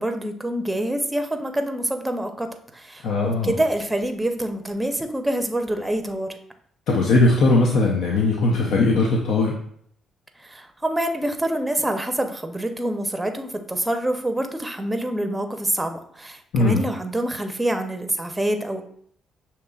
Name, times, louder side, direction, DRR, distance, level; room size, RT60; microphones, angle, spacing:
voice 1, 0.0-6.3 10.4-18.8, right 1 dB, 10° right, 6 dB, 0.6 m, -26 dB
voice 2, 3.0-3.5 6.9-9.5 16.5-16.8, left 2 dB, 80° left, -1 dB, 0.6 m, -19 dB
6.4 x 2.9 x 2.3 m, 0.66 s
cardioid pair, 90°, 0 cm